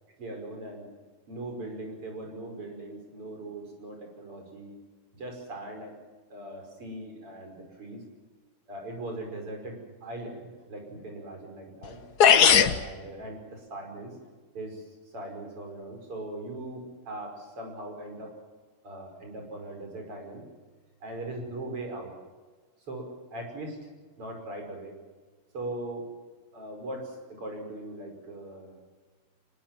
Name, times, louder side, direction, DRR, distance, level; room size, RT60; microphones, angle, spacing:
voice 1, 0.2-0.9 1.3-4.8 5.1-5.9 6.3-8.0 8.7-12.0 12.5-14.2 14.5-18.3 18.8-20.4 21.0-22.1 22.9-23.8 24.2-24.9 25.5-26.1 26.5-28.7, right 1 dB, 90° right, 3 dB, 6.6 m, -40 dB
sound 1, 11.8-11.9 12.2-12.8, left 7 dB, 50° left, 1.5 m, -17 dB
23.5 x 21.5 x 7.5 m, 1.4 s
omnidirectional pair, 2.4 m